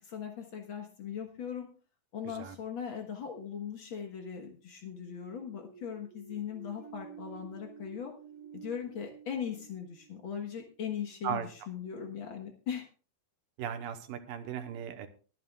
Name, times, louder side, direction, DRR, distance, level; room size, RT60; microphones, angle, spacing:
voice 1, 0.0-1.7 2.1-8.1 8.5-12.9, left 8 dB, 70° left, 3 dB, 1.1 m, -39 dB
sound 1, 5.0-10.7, right 8 dB, 35° right, 3.6 m, -51 dB
voice 2, 13.6-15.1, right 8 dB, 75° right, 8 dB, 2.6 m, -36 dB
24.0 x 9.4 x 2.4 m, 0.38 s
omnidirectional pair, 4.3 m